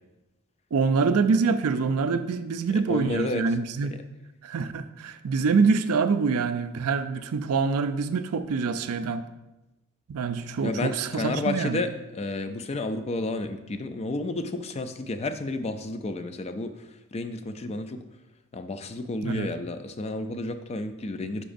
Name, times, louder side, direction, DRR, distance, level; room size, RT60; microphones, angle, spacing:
voice 1, 0.7-3.9 4.4-9.2 10.1-11.8 19.2-19.5, right 4 dB, 75° right, 11 dB, 0.4 m, -25 dB
voice 2, 2.7-3.4 3.9-4.0 10.6-18.0 18.5-21.4, left 2 dB, 30° left, 9 dB, 0.4 m, -31 dB
9.9 x 4.9 x 2.6 m, 1.0 s
head